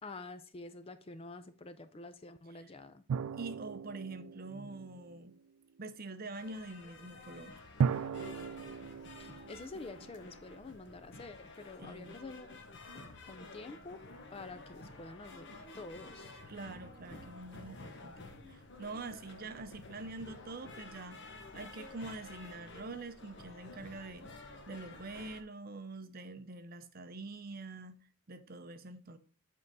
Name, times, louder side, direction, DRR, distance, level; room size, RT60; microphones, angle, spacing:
voice 1, 0.0-3.0 9.2-12.6 12.9-14.0 14.3-16.3, left 3 dB, 25° left, 0.4 m, -48 dB
sound 1, 3.1-5.4 7.8-10.7, right 6 dB, 80° right, 0.4 m, -37 dB
voice 2, 3.3-5.3 5.8-7.6 11.8-12.2 16.5-18.2 18.5-24.3 24.7-28.0 28.3-29.2, right 3 dB, 40° right, 0.6 m, -45 dB
sound 2, 6.3-25.4, left 2 dB, 50° left, 1.0 m, -51 dB
7.5 x 4.6 x 4.0 m
head